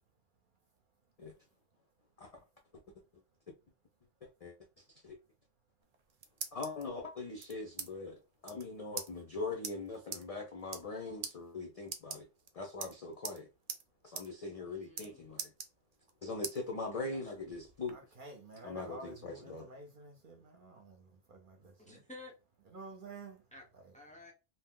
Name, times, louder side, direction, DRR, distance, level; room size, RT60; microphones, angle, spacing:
voice 1, 4.2-4.5 5.0-5.2 6.5-12.3 12.5-13.5 14.0-15.5 16.2-18.0 18.6-19.7, left 3 dB, 65° left, 0.3 m, -41 dB
sound 1, 5.8-6.8 7.4-7.9 8.2-8.3 8.4-8.6 9.0-9.1 9.6-9.7 10.1-10.2 10.6-10.9 11.2-11.3 11.8-12.5 12.8-13.4 13.7-13.8 14.1-14.3 14.5-15.1 15.4-16.1 16.4-16.6 17.1-17.9, right 6 dB, 80° right, 0.3 m, -42 dB
voice 2, 14.7-15.5 16.9-17.3 21.8-22.4 23.5-23.6 23.9-24.3, left 2 dB, 10° left, 0.5 m, -53 dB
voice 3, 17.9-22.0 22.7-23.4 23.7-23.9, right 3 dB, 55° right, 0.7 m, -51 dB
2.7 x 2.0 x 3.6 m
omnidirectional pair, 1.3 m